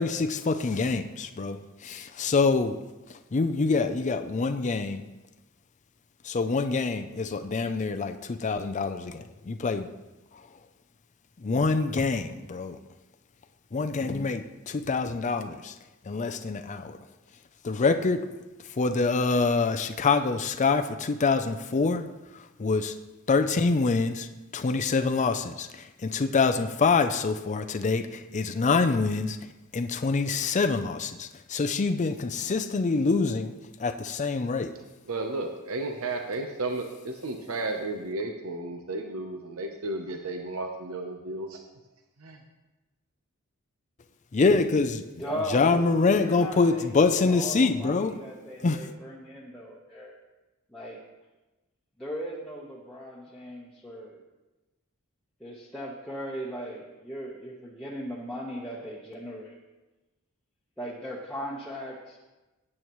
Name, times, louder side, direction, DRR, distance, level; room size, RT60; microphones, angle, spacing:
voice 1, 0.0-2.8 3.1-5.0 6.2-9.9 11.4-12.8 13.7-15.7 16.0-17.0 17.6-18.2 18.8-22.1 22.3-23.0 23.3-24.3 24.5-29.4 29.7-33.5 33.8-34.7 44.3-45.0 45.5-48.2 48.6-48.8, left 4 dB, 35° left, 8 dB, 0.5 m, -25 dB
voice 2, 35.1-41.6 42.2-42.4, right 2 dB, 70° right, 4 dB, 0.8 m, -33 dB
voice 3, 45.2-50.2 50.7-51.0 52.0-54.2 55.4-59.6 60.8-62.2, equal, 5° left, -6 dB, 1.1 m, -38 dB
17.5 x 8.7 x 3.1 m, 1.1 s
head